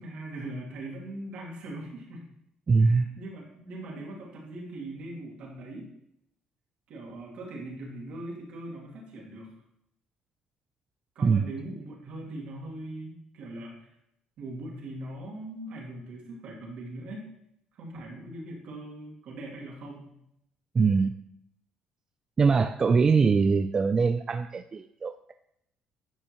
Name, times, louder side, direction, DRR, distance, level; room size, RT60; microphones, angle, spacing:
voice 1, 0.0-2.3 2.8-5.9 6.9-9.5 11.1-13.8 14.4-17.3 17.7-20.2, right 1 dB, 70° right, -3 dB, 2.7 m, -40 dB
voice 2, 2.7-3.1 11.2-11.5 20.7-21.1 22.4-25.3, right 4 dB, 35° right, 8 dB, 0.3 m, -23 dB
11.0 x 5.4 x 3.0 m, 0.76 s
supercardioid pair, 85°, 2 cm